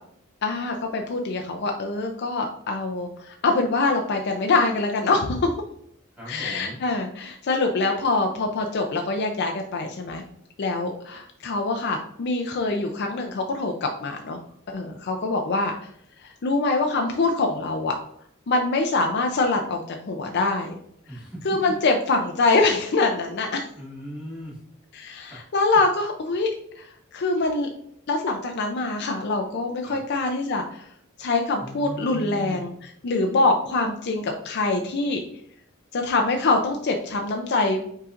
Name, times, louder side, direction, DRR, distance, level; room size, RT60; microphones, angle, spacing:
voice 1, 0.4-5.5 6.3-10.2 10.6-14.4 14.7-15.7 16.2-17.9 18.5-20.7 21.4-23.6 24.9-26.5 26.8-27.7 28.1-30.8 31.2-32.7 33.0-35.2 35.9-37.8, left 3 dB, 55° left, 3 dB, 0.5 m, -24 dB
voice 2, 6.1-6.8 21.1-21.6 23.7-24.6 29.8-30.0 31.6-32.7, equal, 5° right, -7 dB, 1.6 m, -37 dB
5.6 x 3.8 x 2.5 m, 0.70 s
head